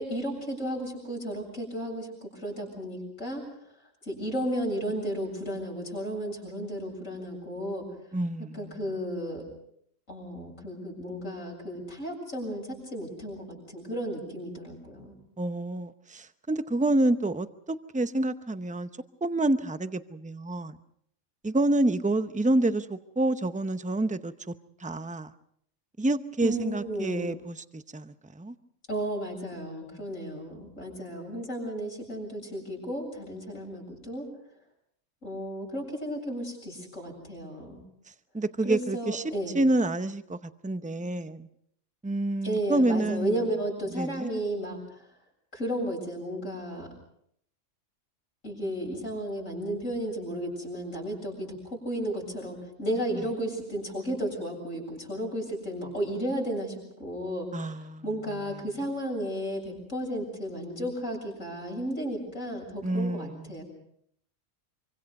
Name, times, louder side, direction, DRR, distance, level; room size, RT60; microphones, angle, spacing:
voice 1, 0.0-3.5 4.0-7.8 8.5-9.4 10.1-15.2 26.4-27.3 28.9-34.3 35.2-37.8 38.6-39.6 42.4-44.8 45.5-46.9 48.4-57.7 58.0-63.6, right 1 dB, 90° left, 0 dB, 7.9 m, -33 dB
voice 2, 8.1-8.8 15.4-18.9 19.2-20.8 21.4-24.5 24.8-25.3 26.0-28.5 38.3-41.5 42.0-43.3 43.9-44.3 53.1-53.2 57.5-58.0 62.8-63.6, right 2 dB, 10° right, 11 dB, 0.6 m, -28 dB
25.5 x 25.0 x 5.4 m, 0.69 s
omnidirectional pair, 1.3 m